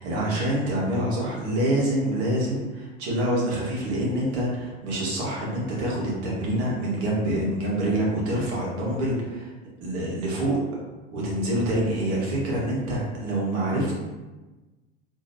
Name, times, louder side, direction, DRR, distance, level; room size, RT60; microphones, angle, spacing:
voice 1, 0.0-9.5 9.8-10.6 11.1-13.9, right 1 dB, 65° right, -4 dB, 1.4 m, -26 dB
3.8 x 2.8 x 2.6 m, 1.2 s
hypercardioid pair, 85°, 32 cm